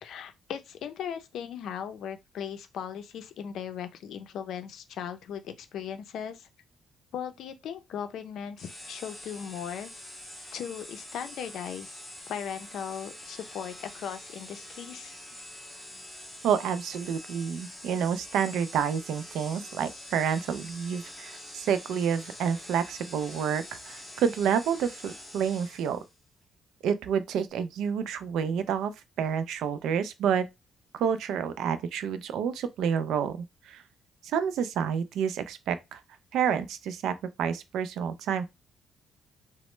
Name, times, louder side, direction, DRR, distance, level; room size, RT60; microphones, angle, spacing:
voice 1, 0.0-6.5 7.1-9.9 10.5-12.0 12.3-15.2, left 8 dB, 75° left, 0.5 m, -38 dB
sound 1, 8.6-26.1, left 1 dB, 5° right, 1.6 m, -45 dB
voice 2, 16.4-26.0 26.8-28.9 29.2-30.5 30.9-33.8 34.2-36.0 36.3-38.4, right 7 dB, 80° right, 0.3 m, -29 dB
3.0 x 2.0 x 3.1 m
cardioid pair, 105°, 0 cm